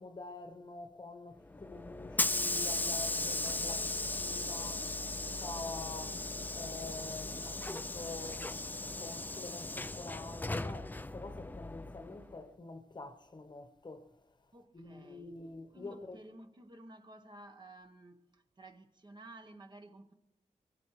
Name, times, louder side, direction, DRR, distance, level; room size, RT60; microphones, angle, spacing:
voice 1, 0.0-4.9 5.1-14.1 14.7-16.2, left 3 dB, 35° left, 1.1 m, -47 dB
Hiss / Sliding door, 1.5-12.3, left 2 dB, 15° left, 0.4 m, -37 dB
voice 2, 14.5-15.3 15.7-20.1, right 1 dB, 35° right, 1.2 m, -53 dB
23.5 x 17.5 x 3.2 m
wide cardioid pair, 90°, 13 cm